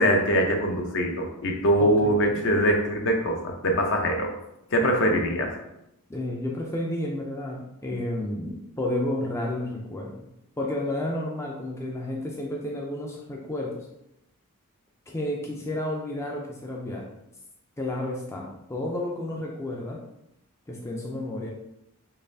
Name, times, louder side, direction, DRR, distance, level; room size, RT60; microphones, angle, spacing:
voice 1, 0.0-4.3 4.7-5.5, equal, 55° left, 2 dB, 0.6 m, -23 dB
voice 2, 1.8-2.6 4.8-5.2 6.1-10.2 10.6-13.9 15.1-17.1 17.8-20.0 20.7-21.5, left 1 dB, 10° left, -2 dB, 0.4 m, -31 dB
3.9 x 3.2 x 2.6 m, 0.84 s
head